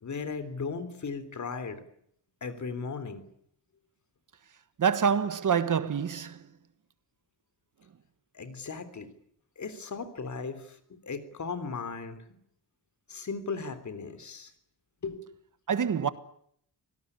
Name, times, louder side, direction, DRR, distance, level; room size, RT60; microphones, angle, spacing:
voice 1, 0.0-1.8 2.4-3.2 8.3-9.1 9.6-10.7 11.0-12.2 13.1-14.5 15.0-15.2, left 4 dB, 45° left, 3.5 m, -36 dB
voice 2, 4.8-6.5 15.7-16.1, right 7 dB, 50° right, 1.5 m, -26 dB
25.5 x 18.5 x 10.0 m
wide cardioid pair, 155°, 41 cm